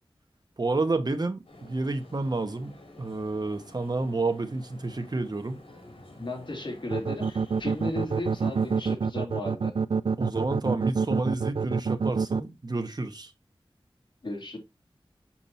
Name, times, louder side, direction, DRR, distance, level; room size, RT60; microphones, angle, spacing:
voice 1, 0.6-5.6 10.2-13.3, right 2 dB, 45° right, 1.1 m, -30 dB
sound 1, 1.5-8.9, left 1 dB, 80° left, 2.5 m, -51 dB
voice 2, 6.2-9.7 14.2-14.6, left 2 dB, 55° left, 2.6 m, -35 dB
sound 2, 6.9-12.4, right 5 dB, 65° right, 0.3 m, -26 dB
7.2 x 5.9 x 2.7 m
wide cardioid pair, 70°, 9 cm